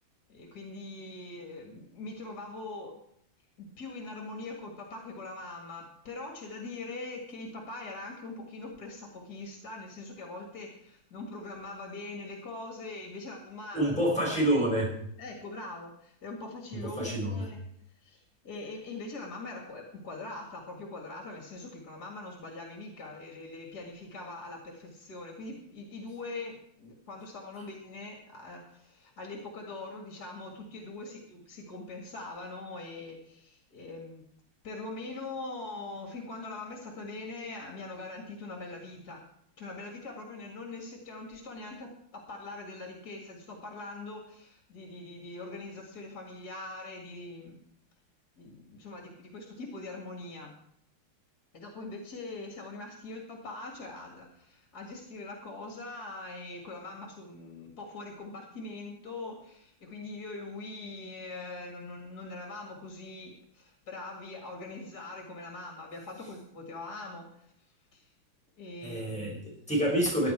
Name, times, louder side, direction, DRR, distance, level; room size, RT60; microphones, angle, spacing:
voice 1, 0.3-3.0 3.6-13.9 15.2-17.6 18.0-34.2 34.6-39.2 39.6-47.6 48.4-50.6 51.5-67.5 67.9-68.0 68.6-69.5, left 2 dB, 50° left, 1 dB, 2.5 m, -42 dB
voice 2, 13.7-14.9 16.7-17.5 68.8-70.3, right 1 dB, 5° left, -3 dB, 5.2 m, -28 dB
16.0 x 11.0 x 4.6 m, 0.69 s
omnidirectional pair, 2.4 m